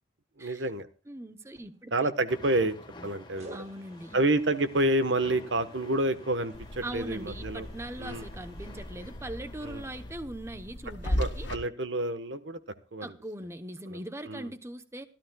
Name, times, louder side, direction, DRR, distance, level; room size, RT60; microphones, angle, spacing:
voice 1, 0.4-0.9 1.9-2.8 3.0-3.6 4.1-7.7 8.0-8.3 9.6-9.8 11.2-12.6 12.9-13.1 13.9-14.5, right 1 dB, 75° right, 11 dB, 1.2 m, -29 dB
voice 2, 1.1-1.9 3.5-4.2 6.8-11.5 13.0-15.1, right 1 dB, 15° right, 9 dB, 0.8 m, -40 dB
sound 1, 1.4-2.1 3.4-8.9, equal, 35° right, 1.5 m, -54 dB
sound 2, 2.3-10.1, left 2 dB, 25° left, 1.3 m, -50 dB
sound 3, 6.5-11.6, equal, 80° left, 2.0 m, -37 dB
25.5 x 13.5 x 2.3 m, 0.32 s
head